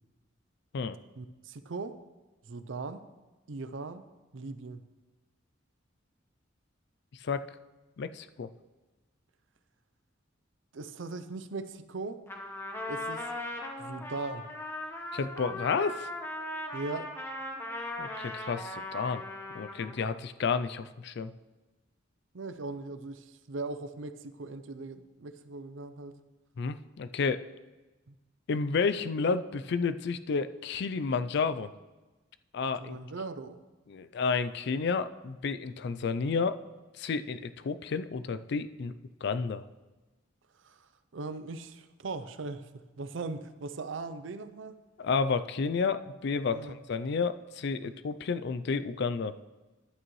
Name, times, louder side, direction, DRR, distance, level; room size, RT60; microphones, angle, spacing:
voice 1, 1.2-2.0 2.4-3.0 3.5-4.1 4.3-4.8 10.7-12.2 12.9-13.3 13.8-14.5 16.7-17.1 22.3-26.1 28.1-28.2 32.8-33.6 40.6-40.8 41.1-44.8 46.5-46.8, right 3 dB, 80° right, 11 dB, 0.6 m, -39 dB
voice 2, 8.0-8.5 15.1-16.1 18.0-19.2 19.5-21.3 26.6-27.4 28.5-31.7 32.5-33.0 33.9-36.5 37.0-38.9 39.2-39.7 45.0-49.3, left 5 dB, 60° left, 12 dB, 0.4 m, -31 dB
Trumpet, 12.3-20.1, left 1 dB, 10° left, 1.0 m, -39 dB
11.0 x 8.8 x 3.1 m, 1.1 s
head